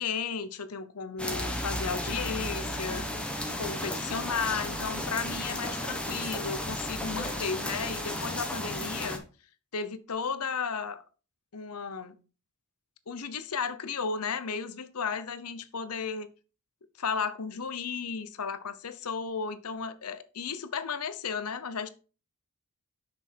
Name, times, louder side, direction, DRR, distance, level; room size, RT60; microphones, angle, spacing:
voice 1, 0.0-3.1 3.6-9.2 9.7-11.0 11.5-12.2 13.1-16.3 17.0-21.9, left 5 dB, 90° left, 0.9 m, -34 dB
sound 1, 1.2-9.2, left 1 dB, 5° left, 1.3 m, -34 dB
7.1 x 6.3 x 4.6 m
head